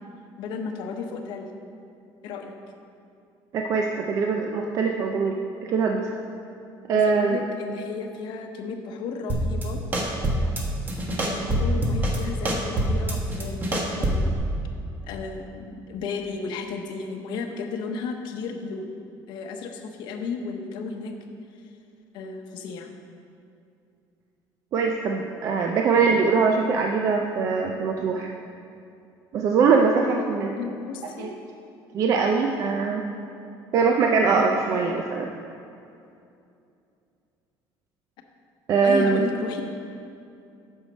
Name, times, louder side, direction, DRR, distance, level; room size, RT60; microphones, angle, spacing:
voice 1, 0.4-1.5 2.2-2.5 6.9-9.8 11.2-14.3 15.0-18.9 19.3-21.1 22.1-22.9 30.6-31.3 34.3-34.6 38.8-39.6, left 5 dB, 65° left, 4 dB, 0.8 m, -33 dB
voice 2, 3.5-6.1 6.9-7.4 24.7-28.3 29.3-30.6 31.2-31.3 31.9-33.0 33.7-35.3 38.7-39.2, right 5 dB, 40° right, 2 dB, 0.5 m, -22 dB
sound 1, 9.3-9.6 9.9-10.6 10.9-12.2 12.4-14.3, right 1 dB, 20° right, 1.0 m, -24 dB
8.4 x 6.4 x 5.2 m, 2.6 s
cardioid pair, 170°, 8 cm